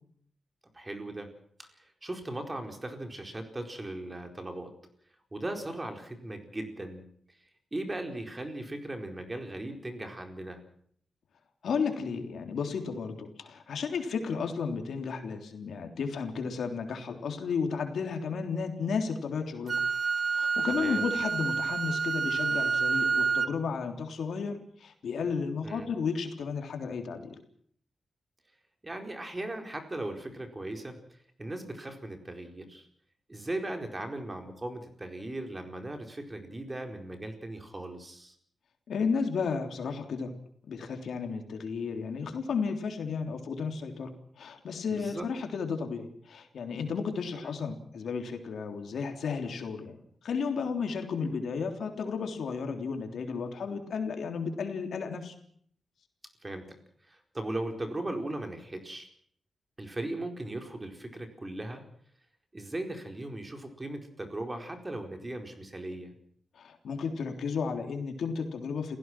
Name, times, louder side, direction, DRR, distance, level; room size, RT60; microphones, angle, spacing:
voice 1, 0.7-1.3 1.8-4.7 5.3-7.0 7.7-10.6 20.7-21.1 25.6-25.9 28.8-31.0 31.4-32.9 33.3-38.3 44.9-45.2 47.3-47.5 56.4-56.8 57.1-59.1 59.8-61.8 62.5-66.1, right 1 dB, 20° right, 5 dB, 4.5 m, -38 dB
voice 2, 11.6-19.8 20.3-27.4 38.9-40.3 40.7-44.1 44.4-50.0 50.2-55.3 66.6-69.0, left 5 dB, 85° left, 5 dB, 3.4 m, -33 dB
Wind instrument woodwind instrument, 19.7-23.5, right 5 dB, 55° right, 0.8 m, -28 dB
29.5 x 16.5 x 6.1 m, 0.63 s
wide cardioid pair, 95°, 0 cm